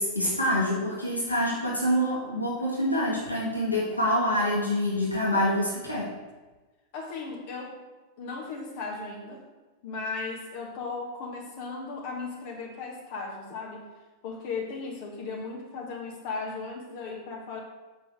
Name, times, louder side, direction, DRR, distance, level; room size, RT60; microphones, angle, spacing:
voice 1, 0.0-6.1, equal, 85° left, -5 dB, 1.7 m, -26 dB
voice 2, 6.9-7.8 8.2-9.5 9.8-13.9 14.2-17.6, left 4 dB, 50° left, -1 dB, 1.6 m, -36 dB
6.5 x 5.5 x 6.4 m, 1.2 s
figure-of-eight pair, 90°, 0 cm